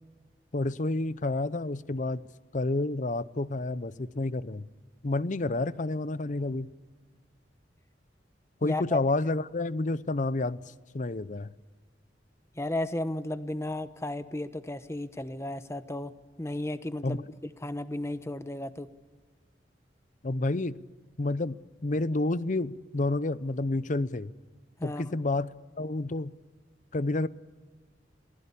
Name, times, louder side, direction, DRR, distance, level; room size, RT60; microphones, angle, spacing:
voice 1, 0.5-2.2 2.5-4.7 5.0-6.7 8.6-10.6 10.9-11.5 17.0-17.2 20.2-20.8 21.2-24.3 24.8-25.5 25.8-26.3 26.9-27.3, left 2 dB, 45° left, 0.7 m, -29 dB
voice 2, 8.6-9.0 12.6-16.1 16.4-17.2 17.6-18.9 24.8-25.0, left 1 dB, 15° left, 1.0 m, -34 dB
28.0 x 20.0 x 8.5 m
head